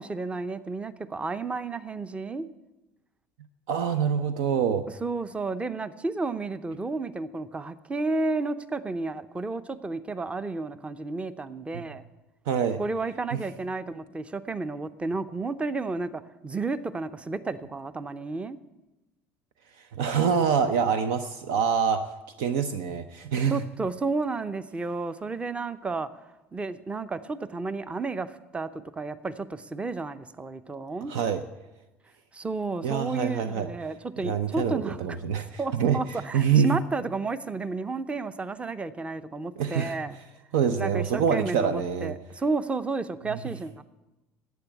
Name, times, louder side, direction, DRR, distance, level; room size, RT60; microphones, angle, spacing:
voice 1, 0.0-2.5 5.0-12.0 12.8-18.6 23.5-26.1 26.5-31.1 32.3-35.0 35.6-40.1 40.8-43.8, right 3 dB, 15° right, 14 dB, 0.7 m, -32 dB
voice 2, 3.7-4.8 11.7-11.8 12.5-12.8 13.3-13.4 19.9-22.1 22.4-23.6 31.1-31.4 32.8-33.7 34.2-36.0 36.3-36.8 39.6-40.0 40.5-42.1, right 7 dB, 70° right, 10 dB, 0.6 m, -25 dB
11.5 x 8.3 x 8.5 m, 1.0 s
hypercardioid pair, 70°, 7 cm